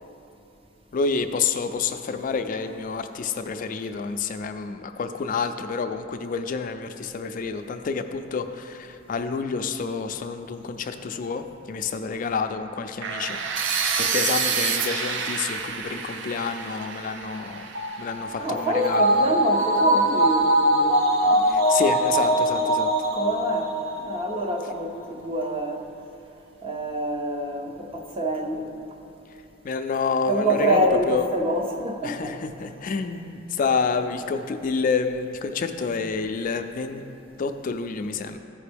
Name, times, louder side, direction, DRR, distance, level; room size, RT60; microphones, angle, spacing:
voice 1, 0.9-13.4 14.0-17.7 18.0-19.4 21.5-22.9 29.6-31.3 32.0-37.0 37.4-38.4, left 5 dB, 45° left, 7 dB, 0.3 m, -28 dB
sound 1, 13.0-18.9, right 6 dB, 65° right, 0.6 m, -28 dB
sound 2, 17.7-24.4 24.8-24.9, right 1 dB, 85° right, 1.1 m, -22 dB
voice 2, 18.4-21.8 23.1-23.7 24.0-25.8 26.6-28.7 30.3-32.9, right 1 dB, 30° right, 2 dB, 0.7 m, -27 dB
14.5 x 5.1 x 3.4 m, 2.9 s
head